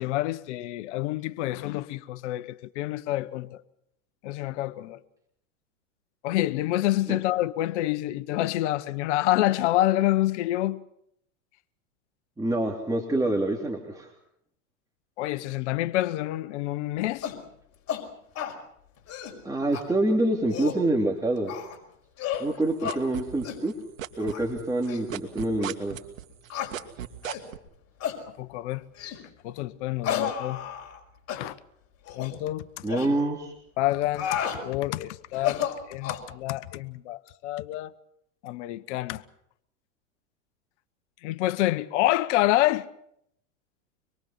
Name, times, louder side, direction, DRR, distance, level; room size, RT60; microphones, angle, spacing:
voice 1, 0.0-3.6 4.2-5.0 6.2-10.8 15.2-17.3 28.4-28.8 29.4-30.6 31.3-31.5 32.1-32.7 33.8-37.9 38.4-39.2 41.2-42.9, left 15 dB, 60° left, 1.2 m, -27 dB
voice 2, 12.4-14.1 19.4-21.5 22.4-23.7 24.2-26.0 32.8-33.5, right 1 dB, 10° right, 3.1 m, -26 dB
sound 1, 17.2-17.4 17.9-18.0 18.4-18.6 19.0-19.4 19.7-19.8 20.3-20.8 21.5-21.8 22.2-22.5 22.8-23.0 23.4-23.6 24.2-24.4 24.9-25.0 25.6-25.7 26.5-26.7 27.2-27.5 28.0-28.2 29.0-29.2 30.0-31.0 31.3-31.4 32.1-32.3 32.9-33.1 33.9-34.6 35.3-36.3, left 9 dB, 40° left, 5.4 m, -32 dB
sound 2, 22.3-23.7 24.0-27.6, right 11 dB, 85° right, 2.0 m, -35 dB
25.5 x 22.5 x 5.8 m
hypercardioid pair, 115°, 39 cm